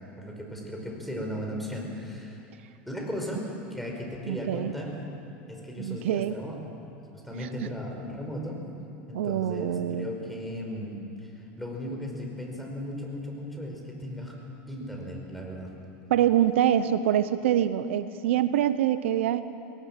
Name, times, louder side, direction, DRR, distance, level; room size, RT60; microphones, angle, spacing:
voice 1, 0.2-2.4 2.9-4.9 5.5-6.5 7.1-8.6 9.1-11.3 11.6-14.4 14.7-15.7, equal, ahead, 0 dB, 5.0 m, -36 dB
voice 2, 4.3-4.7 5.8-6.4 7.4-7.7 9.1-10.1 16.1-19.4, right 11 dB, 85° right, 13 dB, 0.8 m, -25 dB
21.0 x 18.5 x 7.5 m, 2.7 s
supercardioid pair, 110°, 7 cm